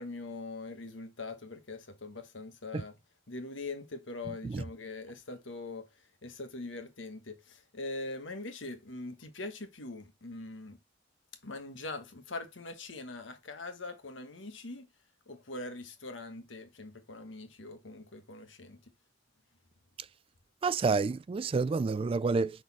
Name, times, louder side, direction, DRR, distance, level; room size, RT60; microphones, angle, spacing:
voice 1, 0.0-2.9 3.3-5.9 6.2-10.8 11.4-14.9 15.3-18.8, left 2 dB, 90° left, 1.4 m, -42 dB
voice 2, 20.6-22.6, right 4 dB, 30° right, 0.3 m, -29 dB
6.3 x 4.0 x 5.8 m
head